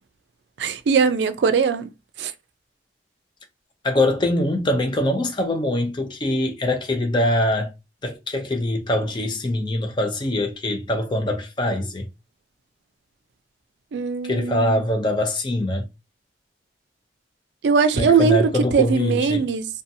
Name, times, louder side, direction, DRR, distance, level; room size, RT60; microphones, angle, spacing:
voice 1, 0.6-1.9 2.2-2.3 13.9-14.8 17.6-19.7, right 5 dB, 80° right, 0.4 m, -20 dB
voice 2, 3.8-7.7 8.0-12.1 14.3-15.8 18.0-19.4, left 1 dB, 25° left, 0.4 m, -23 dB
2.7 x 2.2 x 2.6 m
head